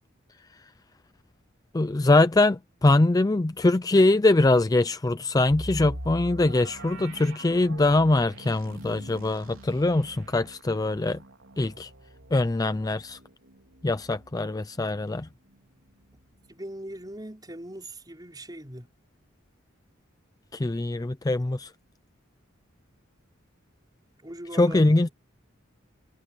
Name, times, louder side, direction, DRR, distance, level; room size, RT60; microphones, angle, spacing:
voice 1, 1.7-11.2 11.6-11.9 12.3-13.2 13.8-15.3 20.5-21.7 24.6-25.1, left 2 dB, 20° left, 0.4 m, -23 dB
sound 1, 5.5-15.2 15.6-15.7 16.2-16.4, right 1 dB, 85° right, 3.8 m, -43 dB
voice 2, 16.5-18.9 24.2-25.1, right 1 dB, 20° right, 5.7 m, -40 dB
head